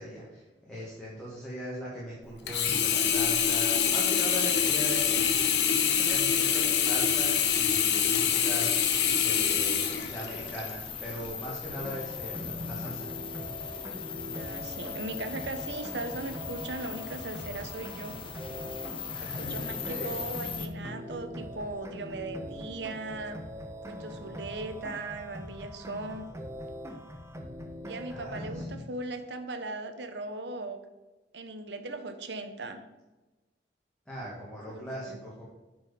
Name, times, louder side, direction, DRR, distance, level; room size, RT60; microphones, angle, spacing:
voice 1, 0.0-13.1 19.1-20.1 28.1-28.8 34.1-35.4, equal, 5° left, -8 dB, 2.0 m, -40 dB
Sink (filling or washing), 2.5-10.7 11.2-11.3, left 8 dB, 70° left, 1.0 m, -25 dB
sound 1, 4.3-20.7, left 7 dB, 30° left, 0.8 m, -40 dB
sound 2, 11.7-28.8, equal, 15° right, 0.8 m, -42 dB
voice 2, 14.4-18.2 19.2-23.4 23.9-26.3 27.8-30.8 31.3-32.8 34.7-35.2, right 2 dB, 70° right, 8 dB, 0.9 m, -38 dB
9.0 x 4.8 x 5.0 m, 1.1 s
head